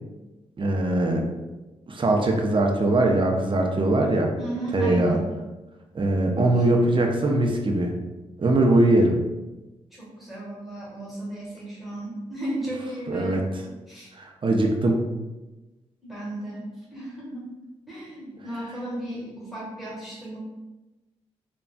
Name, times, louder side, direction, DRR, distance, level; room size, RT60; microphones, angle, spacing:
voice 1, 0.6-1.2 1.9-4.3 4.7-5.2 5.9-7.9 8.4-9.2 13.1-13.4 14.2-15.0, right 2 dB, 35° right, 1 dB, 0.6 m, -21 dB
voice 2, 4.4-5.2 6.5-6.6 9.9-13.5 13.9-14.1 16.0-17.5 17.9-20.4, right 1 dB, ahead, -7 dB, 1.4 m, -35 dB
3.5 x 2.2 x 2.2 m, 1.1 s
supercardioid pair, 40°, 14 cm